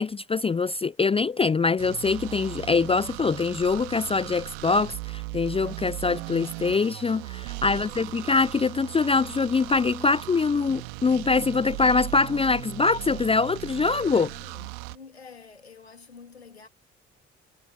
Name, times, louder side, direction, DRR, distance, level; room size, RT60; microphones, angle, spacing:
voice 1, 0.0-14.3, left 4 dB, 20° left, 0.6 m, -24 dB
sound 1, 1.8-15.0, right 34 dB, 70° right, 2.2 m, -38 dB
voice 2, 7.6-8.3 13.9-16.7, left 5 dB, 90° left, 2.2 m, -49 dB
figure-of-eight pair, 45°, 31 cm